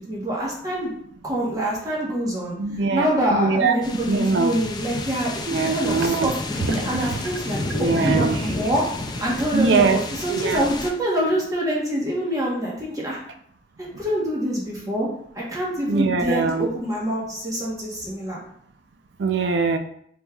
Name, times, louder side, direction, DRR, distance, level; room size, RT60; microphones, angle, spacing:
voice 1, 0.1-0.9 1.2-2.5 2.9-7.6 7.9-8.8 9.2-13.2 14.0-15.1 15.3-18.4, equal, 20° right, -4 dB, 1.0 m, -25 dB
voice 2, 2.6-3.1 3.3-3.8 4.1-4.5 5.5-6.3 6.9-7.2 7.7-8.4 9.5-10.0 10.3-10.7 15.9-16.7 19.2-19.8, right 4 dB, 80° right, 7 dB, 0.4 m, -22 dB
sound 1, 3.8-10.9, left 2 dB, 25° left, 0.3 m, -30 dB
4.3 x 3.4 x 2.3 m, 0.68 s
head